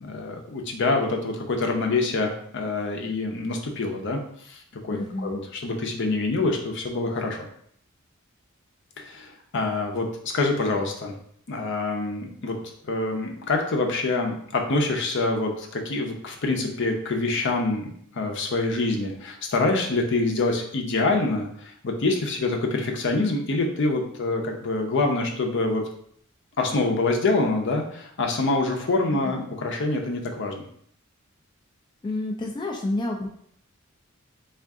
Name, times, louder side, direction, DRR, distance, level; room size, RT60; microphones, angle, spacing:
voice 1, 0.0-4.2 4.5-7.4 9.0-10.1 10.3-11.1 11.5-12.6 12.9-25.8 26.6-30.6, left 3 dB, 60° left, 2 dB, 0.6 m, -26 dB
voice 2, 4.9-5.4 29.1-29.4 32.0-33.3, left 2 dB, 20° left, 0 dB, 0.3 m, -29 dB
3.5 x 2.5 x 3.6 m, 0.65 s
head